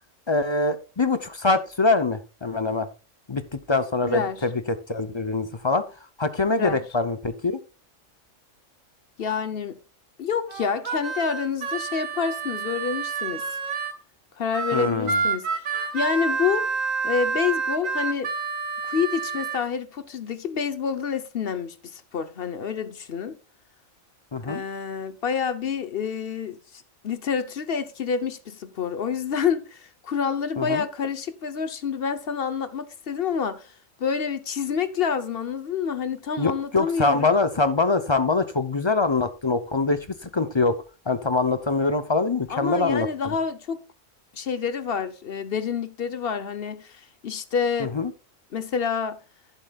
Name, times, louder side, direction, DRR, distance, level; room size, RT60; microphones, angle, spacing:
voice 1, 0.3-2.9 3.3-5.8 6.2-7.6 14.7-15.2 24.3-24.6 30.6-30.8 36.4-40.7 41.1-43.3 47.8-48.1, left 3 dB, 30° left, 0.5 m, -24 dB
voice 2, 4.1-4.4 6.6-6.8 9.2-9.8 10.2-13.4 14.4-15.5 15.9-16.7 17.0-18.3 18.9-23.4 24.4-33.7 34.0-37.4 42.5-43.8 44.3-47.9 48.5-49.2, left 6 dB, 50° left, 1.0 m, -28 dB
Harmonica, 10.5-14.0 14.5-19.6, right 4 dB, 85° right, 1.9 m, -28 dB
11.5 x 11.0 x 2.4 m
omnidirectional pair, 1.3 m